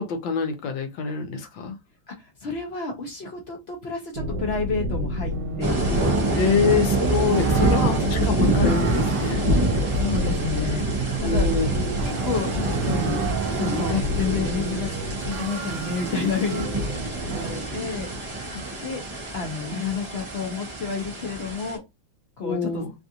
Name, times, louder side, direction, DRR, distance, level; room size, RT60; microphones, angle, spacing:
voice 1, 0.0-1.7 6.4-9.5 11.2-11.8 13.9-14.1 16.5-16.7 18.5-18.6 22.4-22.9, left 5 dB, 75° left, 1.4 m, -26 dB
voice 2, 2.1-6.8 7.4-7.6 10.0-10.8 11.2-11.5 12.0-13.2 13.6-14.9 15.3-18.1 18.8-19.0 19.3-21.8 22.4-22.8, left 4 dB, 60° left, 0.6 m, -30 dB
sound 1, 4.1-17.5, right 2 dB, 70° right, 1.3 m, -30 dB
sound 2, 5.6-21.8, right 1 dB, 25° right, 0.6 m, -26 dB
3.3 x 2.5 x 2.8 m
omnidirectional pair, 2.1 m